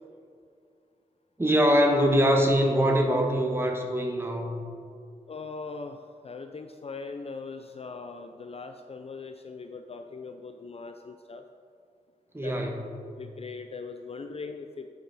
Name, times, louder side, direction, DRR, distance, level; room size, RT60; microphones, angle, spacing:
voice 1, 1.4-4.6 12.3-13.1, equal, 15° right, 1 dB, 1.3 m, -23 dB
voice 2, 5.3-6.0 6.2-11.4 12.4-12.5 13.2-14.9, left 4 dB, 45° left, 6 dB, 0.4 m, -40 dB
9.9 x 5.8 x 4.1 m, 2.4 s
wide cardioid pair, 80°, 15 cm